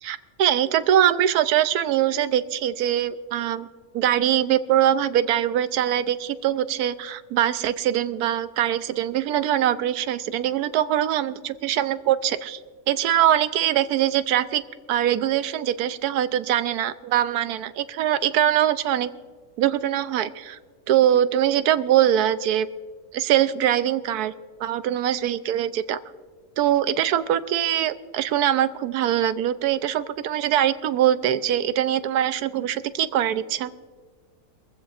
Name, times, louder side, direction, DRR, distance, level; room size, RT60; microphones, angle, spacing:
voice 1, 0.0-3.7 3.9-12.6 12.9-14.6 14.9-19.1 19.6-20.6 20.9-22.7 23.1-24.3 24.6-26.0 26.6-33.7, right 11 dB, 75° right, 13 dB, 1.1 m, -22 dB
22.5 x 15.0 x 2.5 m, 1.5 s
omnidirectional pair, 1.7 m